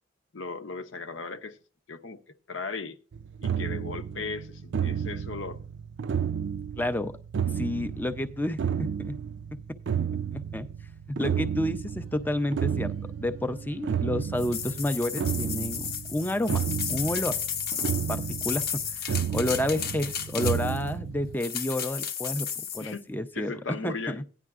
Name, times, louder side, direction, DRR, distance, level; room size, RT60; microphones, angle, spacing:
voice 1, 0.3-1.6 1.9-3.0 3.4-5.6 22.8-23.0 23.3-24.2, left 4 dB, 80° left, 0.8 m, -37 dB
sound 1, 3.1-21.4, right 8 dB, 70° right, 0.4 m, -32 dB
voice 2, 6.8-7.1 7.5-9.2 10.3-10.7 11.1-17.4 18.1-18.7 19.0-24.2, left 1 dB, 10° left, 0.5 m, -30 dB
sound 2, 14.4-20.9 21.4-22.9, left 7 dB, 55° left, 0.8 m, -33 dB
16.5 x 9.9 x 2.4 m
head